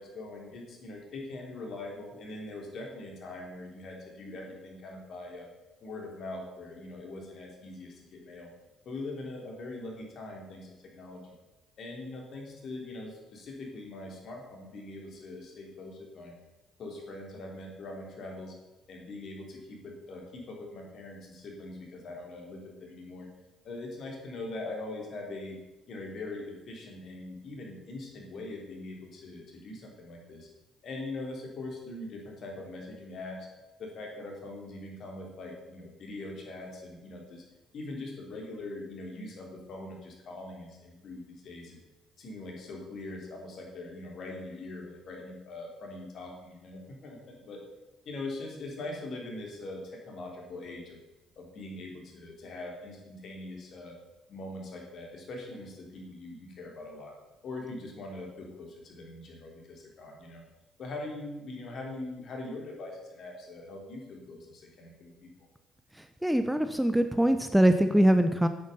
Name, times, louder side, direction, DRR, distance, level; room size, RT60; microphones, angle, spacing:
voice 1, 0.0-5.5 5.8-8.5 8.8-11.2 11.8-16.3 16.8-18.5 18.9-23.3 23.6-25.6 25.9-30.5 30.8-33.4 33.8-37.4 37.7-41.8 42.2-47.6 48.0-51.0 51.4-53.9 54.3-57.1 57.4-60.4 60.8-65.3, left 2 dB, 55° left, 0 dB, 3.2 m, -42 dB
voice 2, 66.2-68.5, right 1 dB, 5° right, 9 dB, 0.9 m, -23 dB
9.4 x 8.7 x 5.7 m, 1.1 s
hypercardioid pair, 50°, 0 cm